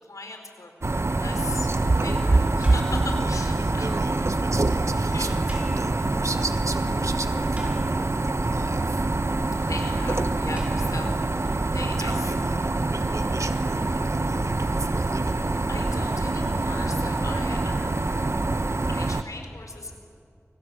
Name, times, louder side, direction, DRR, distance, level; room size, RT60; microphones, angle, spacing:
voice 1, 0.0-0.7 1.1-4.0 5.1-5.3 5.5-5.6 9.6-11.2 11.7-12.3 15.7-18.4 18.9-19.9, left 2 dB, 85° left, 4 dB, 4.2 m, -38 dB
sound 1, 0.8-19.2, right 2 dB, 55° right, 1.1 m, -25 dB
sound 2, 2.6-3.3 3.7-3.8 4.0-4.1 4.4-4.5 4.6-4.8 5.5-6.5 6.8-6.9 7.3-8.3 10.6-12.5, equal, 25° right, 7.0 m, -47 dB
voice 2, 3.2-9.1 12.0-15.4, right 3 dB, 70° right, 7 dB, 1.9 m, -37 dB
29.5 x 25.5 x 7.7 m, 2.4 s
wide cardioid pair, 40°, 5 cm